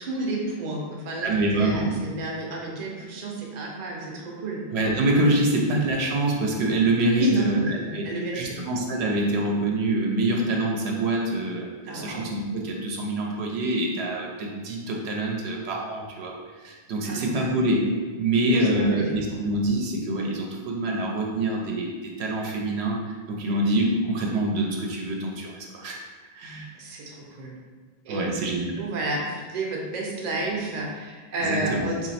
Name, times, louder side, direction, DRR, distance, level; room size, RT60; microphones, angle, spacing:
voice 1, 0.0-1.3 1.6-4.6 7.2-8.6 11.8-12.3 17.1-17.6 18.5-19.4 26.7-27.5 28.0-28.2 28.8-32.1, right 2 dB, 50° right, -1 dB, 0.7 m, -31 dB
voice 2, 1.2-2.0 4.7-8.0 8.3-16.3 16.6-17.8 18.2-26.0 26.4-26.7 28.1-28.8 31.4-31.8, right 1 dB, 90° right, 0 dB, 0.9 m, -25 dB
3.0 x 2.5 x 4.1 m, 1.4 s
omnidirectional pair, 1.1 m